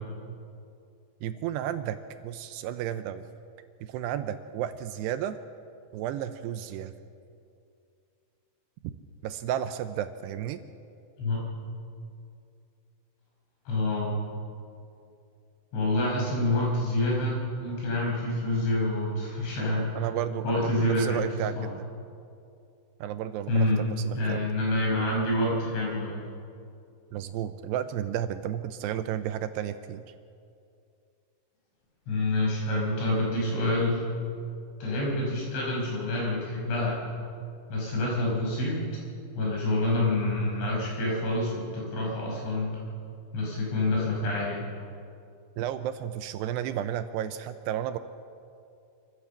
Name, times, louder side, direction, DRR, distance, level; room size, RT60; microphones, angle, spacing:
voice 1, 1.2-2.0 2.2-3.3 3.8-5.4 5.9-6.9 9.2-10.6 20.0-21.9 23.0-24.4 27.1-30.0 45.6-48.0, right 10 dB, 80° right, 10 dB, 2.5 m, -32 dB
voice 2, 13.7-14.2 15.7-19.9 20.4-21.3 21.6-21.7 23.5-23.8 24.1-26.2 32.1-34.0 34.8-37.0 37.7-38.8 39.4-42.7 43.3-44.6, left 2 dB, 85° left, -3 dB, 7.8 m, -27 dB
24.5 x 15.0 x 7.2 m, 2.5 s
omnidirectional pair, 5.3 m